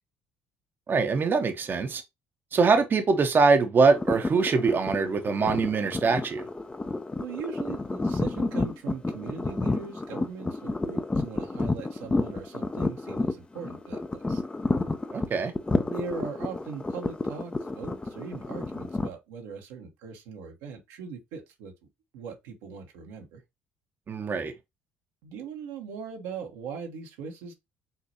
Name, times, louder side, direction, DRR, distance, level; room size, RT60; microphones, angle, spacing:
voice 1, 0.9-2.0 2.5-6.4 15.1-15.5 24.1-24.5, right 4 dB, 40° right, 0.8 m, -23 dB
sound 1, 3.9-19.1, left 2 dB, 20° left, 0.6 m, -30 dB
voice 2, 7.2-14.4 15.7-21.7 22.1-23.4 25.2-27.5, right 6 dB, 75° right, 1.1 m, -40 dB
5.5 x 3.0 x 2.8 m
hypercardioid pair, 55°, 6 cm